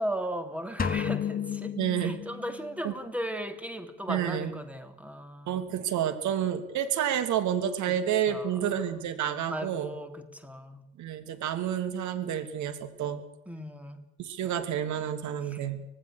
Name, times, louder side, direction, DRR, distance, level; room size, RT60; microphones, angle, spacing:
voice 1, 0.0-5.6 7.9-8.0 8.3-8.7 9.5-10.8 13.5-14.0 15.4-15.6, equal, 5° right, 9 dB, 3.0 m, -37 dB
sound 1, 0.8-2.8, left 7 dB, 20° left, 2.2 m, -32 dB
voice 2, 1.8-2.2 2.8-2.9 4.1-4.5 5.5-9.9 11.0-13.2 14.2-15.9, right 9 dB, 45° right, 9 dB, 3.2 m, -29 dB
25.5 x 19.0 x 6.6 m, 0.90 s
figure-of-eight pair, 65°, 40 cm